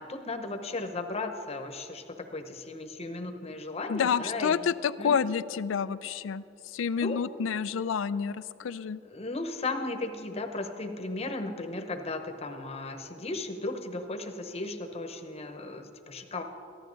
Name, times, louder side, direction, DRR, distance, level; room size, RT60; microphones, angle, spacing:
voice 1, 0.0-4.6 5.0-5.4 7.0-7.2 8.6-8.7 9.1-16.4, left 2 dB, 35° left, 6 dB, 0.9 m, -36 dB
voice 2, 3.9-6.4 6.7-9.0, left 7 dB, 85° left, 16 dB, 0.4 m, -29 dB
15.0 x 12.0 x 3.9 m, 2.6 s
head